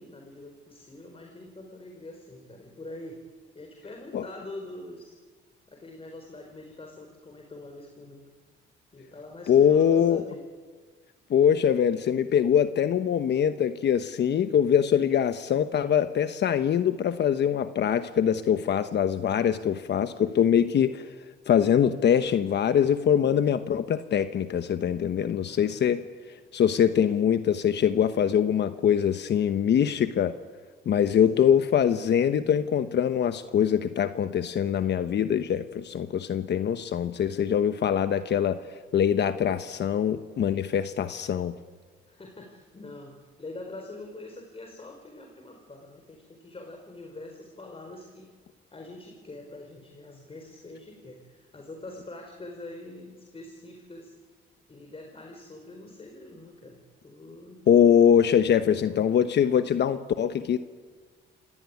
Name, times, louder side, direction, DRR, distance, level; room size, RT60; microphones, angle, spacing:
voice 1, 0.0-3.2 3.5-5.2 5.7-8.3 8.9-10.5 25.5-26.1 31.3-31.7 42.0-48.3 48.7-54.2 54.7-57.6 58.5-59.2, left 2 dB, 30° left, 3 dB, 4.5 m, -44 dB
voice 2, 9.5-10.2 11.3-21.1 21.5-26.0 26.3-30.4 30.9-41.6 57.7-60.6, left 8 dB, 60° left, 10 dB, 1.1 m, -23 dB
27.0 x 18.5 x 9.5 m, 1.5 s
cardioid pair, 90°, 20 cm